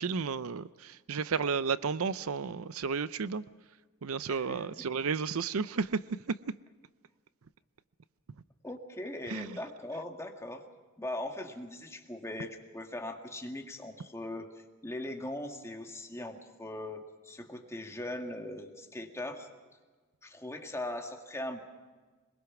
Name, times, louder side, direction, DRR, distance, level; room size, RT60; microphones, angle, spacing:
voice 1, 0.0-3.4 4.0-6.0 9.3-9.6, right 5 dB, 75° right, 16 dB, 0.6 m, -32 dB
voice 2, 4.3-4.9 8.6-10.6 11.0-19.5 20.2-21.6, left 1 dB, 15° left, 3 dB, 1.9 m, -40 dB
23.0 x 22.0 x 6.0 m, 1.4 s
head